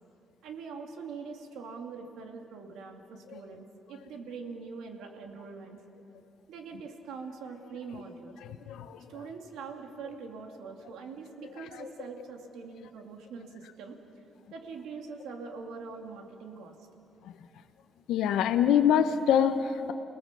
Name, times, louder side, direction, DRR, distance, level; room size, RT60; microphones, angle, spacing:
voice 1, 0.4-5.8 6.5-8.3 9.1-14.2 14.5-16.8, right 5 dB, 85° right, 3 dB, 2.5 m, -43 dB
voice 2, 8.4-9.1 11.4-11.9 17.2-17.3 18.1-19.9, left 9 dB, 85° left, 7 dB, 0.9 m, -26 dB
30.0 x 19.0 x 6.9 m, 2.8 s
cardioid pair, 90°, 0 cm